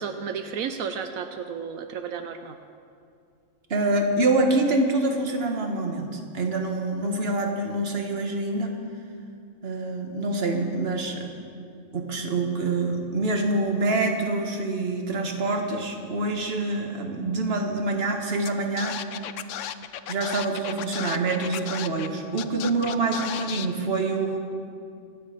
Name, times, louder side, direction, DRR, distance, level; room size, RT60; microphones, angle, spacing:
voice 1, 0.0-2.6 20.3-20.4, right 6 dB, 85° right, 7 dB, 1.1 m, -33 dB
voice 2, 3.7-8.8 9.6-11.3 11.9-19.0 20.1-24.4, right 2 dB, 50° right, 3 dB, 1.6 m, -26 dB
Scratching (performance technique), 18.4-18.5 18.8-22.1 22.4-23.7, left 10 dB, 70° left, 0.9 m, -34 dB
25.5 x 8.6 x 5.1 m, 2.4 s
omnidirectional pair, 1.4 m